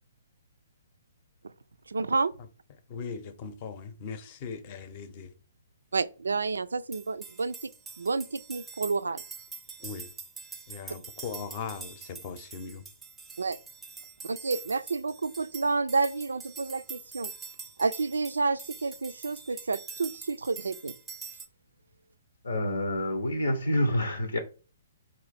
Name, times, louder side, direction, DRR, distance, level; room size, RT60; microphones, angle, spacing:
voice 1, 1.9-2.3 5.9-7.6 8.0-9.2 13.4-13.6 14.2-17.3 17.8-20.9, right 4 dB, 80° right, 0.3 m, -30 dB
voice 2, 2.9-5.3 9.8-10.1 10.7-12.8, left 5 dB, 40° left, 0.7 m, -39 dB
sound 1, 6.9-21.5, right 5 dB, 10° right, 0.5 m, -45 dB
voice 3, 22.4-24.4, left 1 dB, 80° left, 0.7 m, -27 dB
4.3 x 2.5 x 4.1 m
figure-of-eight pair, 130°, 0 cm